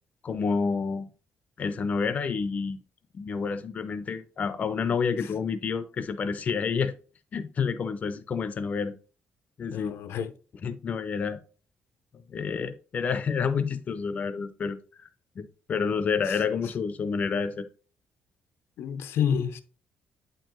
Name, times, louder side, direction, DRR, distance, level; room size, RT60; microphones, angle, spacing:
voice 1, 0.2-1.1 1.6-2.8 3.1-6.9 7.3-8.9 9.6-9.9 10.6-11.4 12.3-15.1 15.4-17.7, left 5 dB, 40° left, 0.5 m, -29 dB
voice 2, 9.7-10.3 16.2-16.4 18.8-19.6, left 8 dB, 85° left, 0.6 m, -29 dB
8.6 x 4.5 x 3.0 m
cardioid pair, 155°, 4 cm